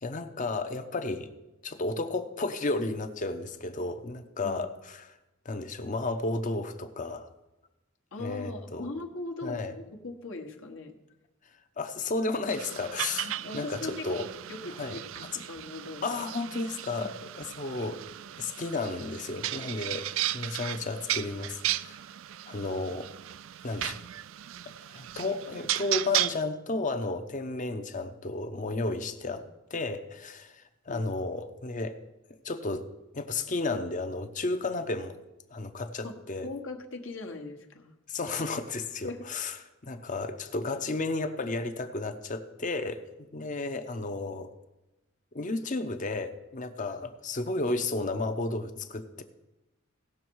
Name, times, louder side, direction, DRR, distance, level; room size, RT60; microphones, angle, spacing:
voice 1, 0.0-1.3 1.6-5.0 5.4-7.3 8.2-8.9 9.4-9.7 11.8-14.3 14.8-15.0 16.0-18.0 18.4-22.0 22.5-23.1 23.6-24.0 24.9-29.4 29.7-32.0 32.4-32.8 33.1-35.2 35.5-36.5 38.1-39.6 39.8-44.5 45.3-49.2, left 3 dB, 40° left, 8 dB, 0.8 m, -33 dB
voice 2, 8.1-11.0 13.2-16.2 29.2-29.4 30.9-31.1 36.0-36.1 36.4-37.9 39.0-39.3, left 2 dB, 70° left, 2 dB, 1.3 m, -40 dB
sound 1, 12.5-26.4, right 13 dB, 70° right, 0.3 m, -35 dB
17.5 x 6.3 x 4.6 m, 0.99 s
head